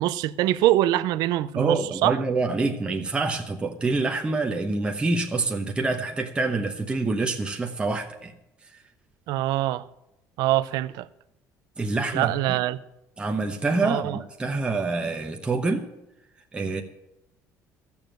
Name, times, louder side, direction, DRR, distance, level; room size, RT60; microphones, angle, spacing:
voice 1, 0.0-2.2 9.3-9.8 10.4-11.1 12.1-12.8 13.8-14.2, right 14 dB, 80° right, 0.5 m, -24 dB
voice 2, 1.6-8.3 11.8-12.3 13.2-15.9 16.5-16.8, right 3 dB, 15° right, 0.9 m, -26 dB
14.0 x 7.2 x 7.7 m
cardioid pair, 140°, 7 cm